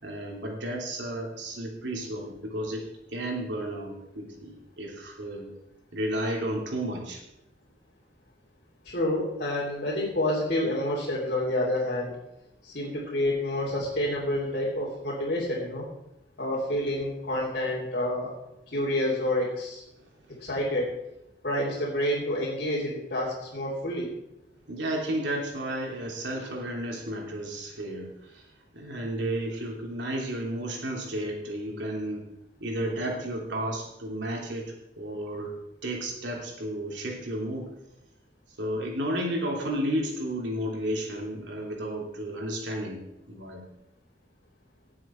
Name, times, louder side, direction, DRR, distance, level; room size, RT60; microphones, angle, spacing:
voice 1, 0.0-2.8 3.1-5.5 5.9-7.2 20.0-20.1 24.7-28.5 28.7-32.2 32.6-35.5 35.8-37.7 38.6-43.0 43.3-43.6, right 1 dB, 80° right, -1 dB, 3.2 m, -32 dB
voice 2, 8.8-12.1 12.6-15.8 16.4-18.3 18.7-19.8 20.4-20.9 21.4-24.1, left 1 dB, 55° left, -7 dB, 3.2 m, -28 dB
18.0 x 7.6 x 4.5 m, 0.88 s
head